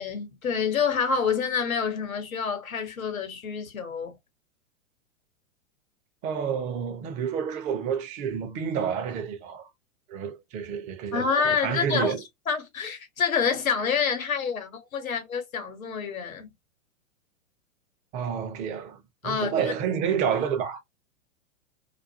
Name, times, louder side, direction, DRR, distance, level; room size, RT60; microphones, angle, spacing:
voice 1, 0.0-4.2 11.1-12.1 12.5-16.5 19.2-19.6, left 6 dB, 85° left, 1.0 m, -27 dB
voice 2, 6.2-9.7 10.1-12.2 18.1-20.8, right 7 dB, 20° right, 0.4 m, -29 dB
2.4 x 2.2 x 2.6 m
hypercardioid pair, 115°, 40 cm